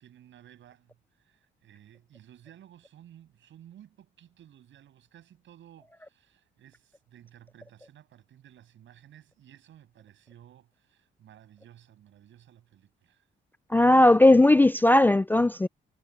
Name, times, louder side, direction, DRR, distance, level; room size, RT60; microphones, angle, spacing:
voice 1, 0.0-13.3, right 11 dB, 70° right, 7.3 m, -55 dB
voice 2, 13.7-15.7, left 1 dB, 10° left, 0.3 m, -18 dB
cardioid pair, 90°, 20 cm